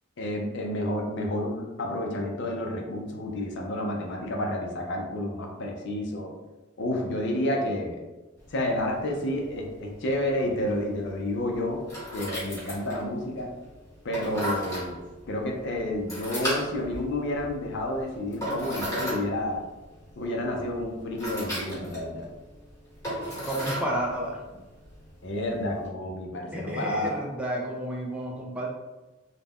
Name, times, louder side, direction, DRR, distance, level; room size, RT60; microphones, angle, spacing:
voice 1, 0.2-6.3 6.8-8.0 8.5-11.8 12.1-13.5 14.0-15.0 15.3-19.6 20.2-22.3 25.2-27.2, left 1 dB, 60° left, 0 dB, 0.5 m, -30 dB
sound 1, 8.4-25.9, equal, 15° left, 1.2 m, -38 dB
voice 2, 23.5-24.4 26.5-28.7, right 1 dB, 5° right, -2 dB, 0.3 m, -31 dB
2.4 x 2.1 x 3.4 m, 1.1 s
head